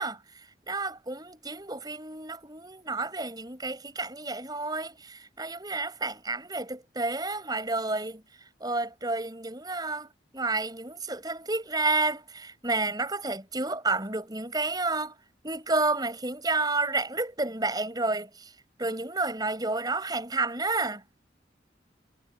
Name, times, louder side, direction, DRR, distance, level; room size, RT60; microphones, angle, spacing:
voice 1, 0.0-8.2 8.6-15.1 15.4-18.5 18.8-21.0, right 3 dB, 20° right, 7.4 m, -30 dB
head